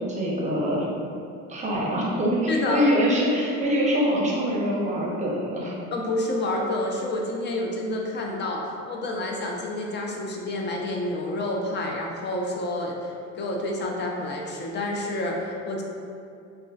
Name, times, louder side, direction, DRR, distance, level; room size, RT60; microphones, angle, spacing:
voice 1, 0.1-0.9 1.5-5.7, equal, 20° right, -4 dB, 0.6 m, -24 dB
voice 2, 2.5-2.8 5.9-15.8, left 1 dB, 30° left, 0 dB, 0.4 m, -29 dB
3.1 x 2.4 x 2.3 m, 2.5 s
supercardioid pair, 100°, 34 cm